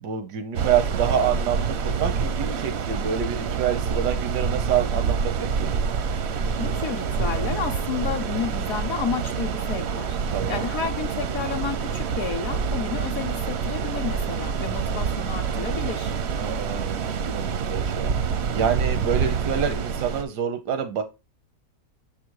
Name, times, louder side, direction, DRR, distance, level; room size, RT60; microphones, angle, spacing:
voice 1, 0.0-5.7 10.3-10.6 16.4-21.0, right 8 dB, 85° right, 1.3 m, -27 dB
sound 1, 0.5-20.2, right 6 dB, 65° right, 0.6 m, -27 dB
voice 2, 6.6-16.1, left 7 dB, 65° left, 1.0 m, -31 dB
6.8 x 3.7 x 4.6 m
omnidirectional pair, 1.7 m